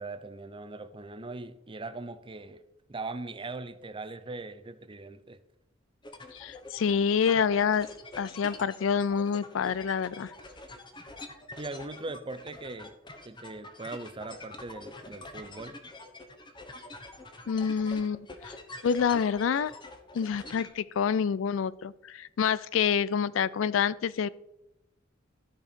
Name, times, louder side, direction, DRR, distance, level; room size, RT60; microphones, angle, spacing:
voice 1, 0.0-2.6 2.9-5.4 11.6-13.0 13.2-15.8, right 3 dB, 25° right, 11 dB, 0.6 m, -40 dB
sound 1, 6.0-20.7, left 2 dB, 25° left, 1.0 m, -46 dB
voice 2, 6.3-7.9 8.2-10.3 17.5-18.5 18.8-19.7 20.1-24.3, left 7 dB, 75° left, 19 dB, 0.4 m, -27 dB
13.0 x 4.5 x 5.1 m, 0.87 s
head